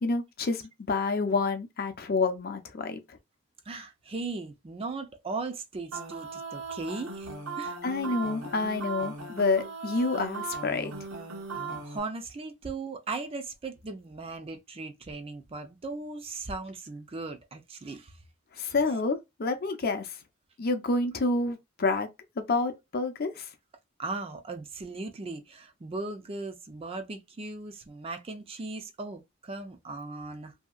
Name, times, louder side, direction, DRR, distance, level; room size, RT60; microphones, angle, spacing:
voice 1, 0.0-3.0 7.8-10.9 18.6-20.2 20.6-22.1 22.4-23.5, left 3 dB, 45° left, 0.6 m, -28 dB
voice 2, 3.7-7.3 7.6-7.8 11.5-18.2 24.0-30.5, right 3 dB, 25° right, 0.4 m, -38 dB
sound 1, 5.9-12.0, right 4 dB, 85° right, 0.9 m, -38 dB
2.7 x 2.7 x 2.3 m
head